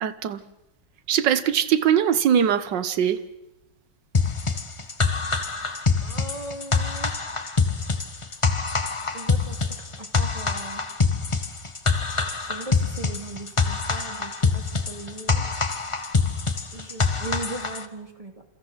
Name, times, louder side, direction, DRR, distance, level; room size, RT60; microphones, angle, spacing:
voice 1, 0.0-0.4 1.1-3.2, right 9 dB, 75° right, 1.7 m, -21 dB
sound 1, 4.1-17.8, left 4 dB, 25° left, 0.8 m, -25 dB
voice 2, 6.0-7.1 9.1-10.8 12.4-15.5 16.7-18.4, right 1 dB, 20° right, 2.2 m, -38 dB
29.0 x 28.0 x 4.1 m
omnidirectional pair, 2.0 m